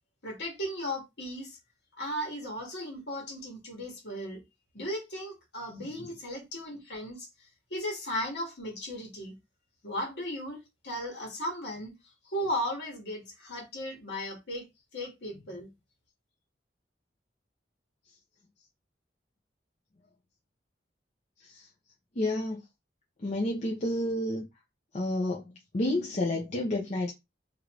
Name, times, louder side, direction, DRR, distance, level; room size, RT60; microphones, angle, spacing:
voice 1, 0.2-1.6 2.0-4.4 4.7-7.3 7.7-9.3 9.8-11.9 12.2-14.6 14.9-15.7, equal, 65° left, 1.5 m, -36 dB
voice 2, 22.2-22.6 23.2-24.4 24.9-25.5 25.7-27.1, left 1 dB, 40° left, 0.6 m, -30 dB
3.0 x 2.6 x 3.0 m
head